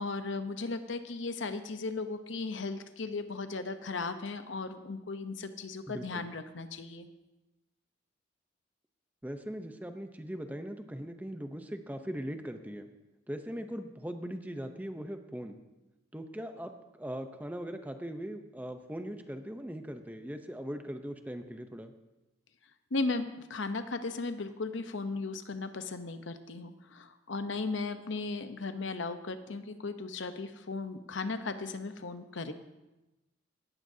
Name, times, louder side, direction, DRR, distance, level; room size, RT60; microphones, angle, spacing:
voice 1, 0.0-7.1 22.9-32.5, left 3 dB, 70° left, 9 dB, 0.8 m, -36 dB
voice 2, 5.9-6.3 9.2-12.9 13.3-15.6 16.1-16.7 17.0-21.9, equal, 10° right, 7 dB, 0.7 m, -40 dB
18.0 x 13.5 x 2.8 m, 1.0 s
head